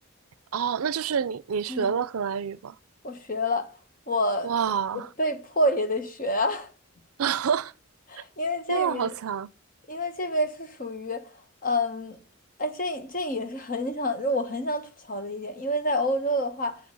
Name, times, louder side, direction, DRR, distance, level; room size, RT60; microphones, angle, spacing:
voice 1, 0.5-2.7 4.4-5.1 7.2-7.7 8.7-9.5, right 7 dB, 85° right, 0.5 m, -27 dB
voice 2, 3.0-3.7 4.1-4.5 4.9-6.7 8.1-9.1 9.9-11.2 11.6-12.2 12.6-16.8, left 1 dB, 40° left, 1.3 m, -28 dB
8.6 x 6.1 x 7.6 m
head